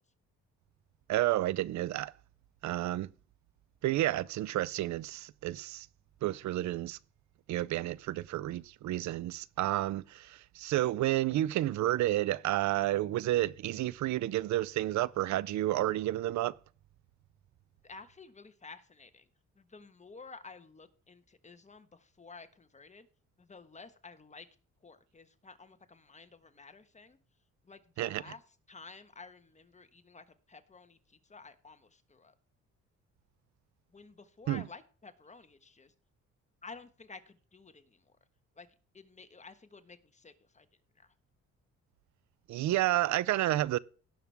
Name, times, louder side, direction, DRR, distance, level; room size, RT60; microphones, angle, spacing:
voice 1, 1.1-2.1 2.6-3.1 3.8-5.9 6.2-7.0 7.5-16.6 28.0-28.2 34.5-34.6 42.5-43.8, right 15 dB, 70° right, 0.5 m, -30 dB
voice 2, 17.8-19.3 19.5-23.1 23.4-24.5 24.8-27.2 27.6-28.4 28.7-32.3 33.9-35.9 36.6-38.2 38.6-38.7 38.9-40.7 40.9-41.1, left 4 dB, 25° left, 1.3 m, -52 dB
18.0 x 6.0 x 3.4 m
cardioid pair, 90°, 30 cm